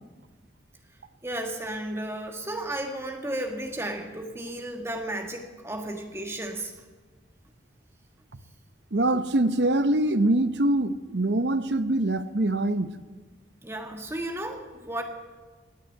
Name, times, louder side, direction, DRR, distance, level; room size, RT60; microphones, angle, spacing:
voice 1, 1.2-6.7 13.6-15.0, right 1 dB, 15° right, 3 dB, 1.6 m, -33 dB
voice 2, 8.9-12.9, right 1 dB, 65° right, 12 dB, 0.8 m, -24 dB
19.5 x 8.1 x 9.1 m, 1.3 s
head